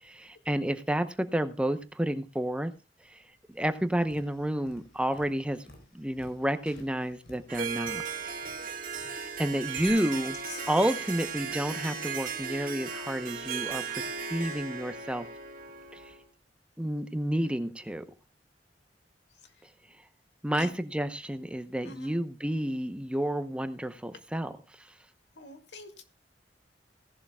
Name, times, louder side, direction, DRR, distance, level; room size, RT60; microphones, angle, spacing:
voice 1, 0.0-2.7 3.1-3.2 3.5-5.6 5.9-8.4 9.0-10.4 10.7-15.3 15.9-16.1 16.8-18.1 20.4-24.5 24.8-24.9, right 1 dB, 5° right, 9 dB, 0.8 m, -30 dB
Tap, 3.5-9.9, left 1 dB, 70° left, 4.1 m, -56 dB
Harp, 7.5-16.2, right 5 dB, 50° right, 1.8 m, -36 dB
voice 2, 9.8-10.7 19.3-19.7 20.5-20.8 21.8-22.2 25.4-26.0, left 3 dB, 85° left, 5 dB, 2.2 m, -46 dB
17.5 x 11.5 x 2.3 m, 0.30 s
head